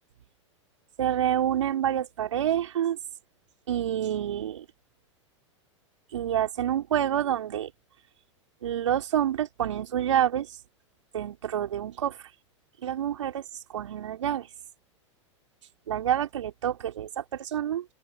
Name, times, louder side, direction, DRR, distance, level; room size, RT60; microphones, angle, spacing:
voice 1, 1.0-3.0 3.7-4.7 6.1-7.7 8.6-10.6 11.1-12.3 12.8-14.5 15.9-17.9, right 10 dB, 75° right, 4.6 m, -28 dB
open air
hypercardioid pair, 95°, 16 cm